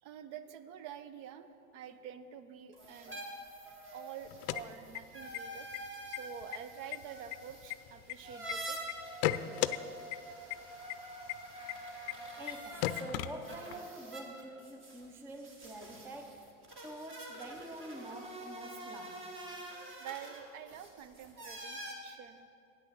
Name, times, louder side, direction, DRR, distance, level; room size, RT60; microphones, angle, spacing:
voice 1, 0.0-3.2 3.9-5.7 6.1-8.8 12.1-12.2 20.0-22.5, right 9 dB, 60° right, 12 dB, 0.7 m, -48 dB
sound 1, 2.7-13.0 13.4-21.9, right 1 dB, 30° right, 1.6 m, -47 dB
sound 2, 4.3-5.4 5.7-5.8 6.1-6.6 6.9-8.5 8.9-9.8 10.1-10.2 10.5-10.6 10.9-11.0 11.3-11.4 11.7-11.8 12.1-12.2 12.5-12.6 12.8-13.9, left 15 dB, 60° left, 0.5 m, -34 dB
voice 2, 12.4-16.5 16.8-19.3, right 1 dB, 5° right, 5 dB, 0.3 m, -46 dB
8.6 x 6.3 x 7.0 m, 2.6 s
hypercardioid pair, 105°, 43 cm